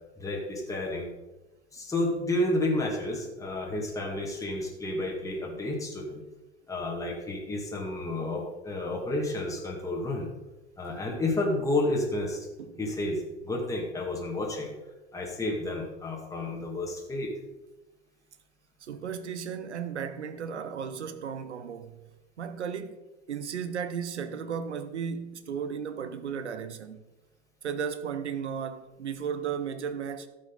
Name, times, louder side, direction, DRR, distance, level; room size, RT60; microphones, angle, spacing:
voice 1, 0.2-1.1 1.7-6.2 6.7-10.3 10.8-12.5 12.8-14.7 15.1-17.3, left 1 dB, 10° left, 2.3 m, -31 dB
voice 2, 18.8-22.0 22.4-27.0 27.6-30.3, right 7 dB, 75° right, 0.9 m, -35 dB
13.0 x 7.6 x 4.1 m
figure-of-eight pair, 85°, 34 cm